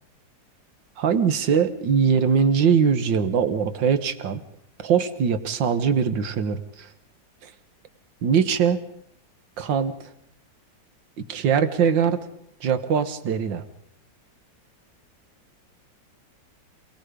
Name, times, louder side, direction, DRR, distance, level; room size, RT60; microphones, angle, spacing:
voice 1, 1.0-4.4 4.8-6.9 7.4-7.5 8.2-8.8 9.6-10.0 11.2-12.2 12.6-13.7, right 7 dB, 80° right, 11 dB, 2.0 m, -22 dB
28.0 x 18.5 x 5.1 m, 0.75 s
omnidirectional pair, 2.0 m